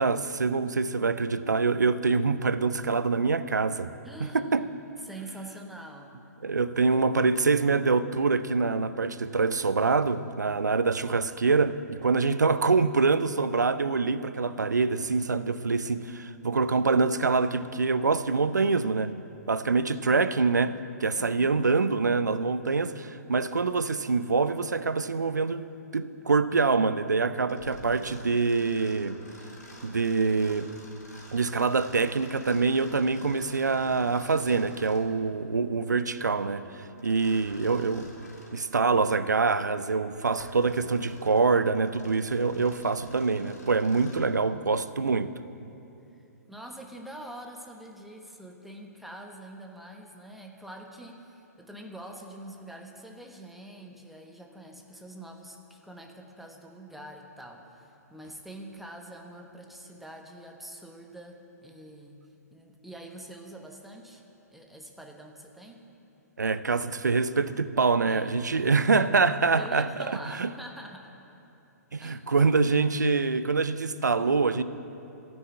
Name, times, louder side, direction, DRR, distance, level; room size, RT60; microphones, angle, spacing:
voice 1, 0.0-3.9 4.2-4.6 6.4-19.1 19.5-25.7 25.9-29.2 29.8-30.7 31.3-38.1 38.5-45.3 66.4-70.5 71.9-74.6, right 4 dB, 85° right, 13 dB, 0.5 m, -25 dB
voice 2, 4.0-4.6 5.0-6.2 21.2-21.7 46.5-64.2 64.5-65.9 68.0-68.7 69.3-71.2 72.0-72.2, right 1 dB, ahead, 1 dB, 1.0 m, -45 dB
Mechanisms, 27.5-35.1 37.0-38.6 39.2-39.3 39.9-44.3, left 1 dB, 70° left, 3.4 m, -49 dB
13.5 x 6.2 x 9.4 m, 2.9 s
figure-of-eight pair, 120°, 9 cm